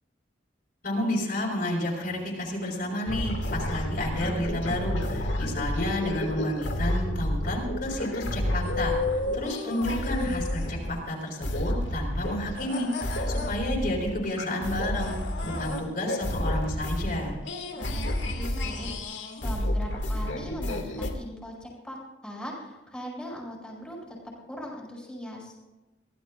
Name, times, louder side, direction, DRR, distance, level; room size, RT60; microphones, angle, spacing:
voice 1, 0.8-17.4, left 1 dB, 50° left, -2 dB, 4.6 m, -31 dB
sound 1, 3.1-11.0 11.4-21.1, left 1 dB, 75° left, 2.1 m, -30 dB
voice 2, 17.8-22.0 22.2-24.2 24.5-25.6, equal, 5° left, -3 dB, 5.4 m, -40 dB
24.5 x 16.5 x 2.5 m, 1.1 s
head